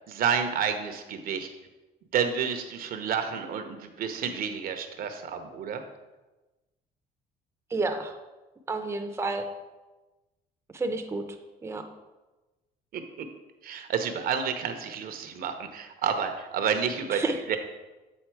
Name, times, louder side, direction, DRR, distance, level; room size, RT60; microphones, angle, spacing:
voice 1, 0.1-1.5 2.1-5.8 12.9-13.2 13.6-17.6, right 7 dB, 60° right, 7 dB, 0.8 m, -30 dB
voice 2, 7.7-8.2 8.7-9.5 10.7-11.2 11.6-11.8 17.1-17.4, right 3 dB, 15° right, 5 dB, 0.6 m, -30 dB
8.0 x 4.0 x 4.5 m, 1.1 s
cardioid pair, 110°, 17 cm